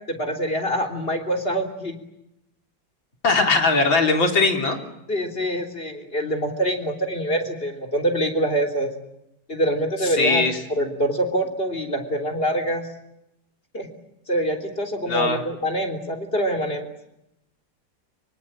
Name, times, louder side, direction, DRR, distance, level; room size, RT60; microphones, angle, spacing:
voice 1, 0.1-2.0 5.1-8.9 9.5-10.4 10.7-12.9 13.7-13.9 14.3-16.9, right 1 dB, 30° left, 4 dB, 3.7 m, -25 dB
voice 2, 3.2-4.8 10.0-10.6 15.1-15.4, left 3 dB, 90° left, 4 dB, 4.4 m, -20 dB
24.5 x 24.5 x 8.9 m, 0.84 s
omnidirectional pair, 2.1 m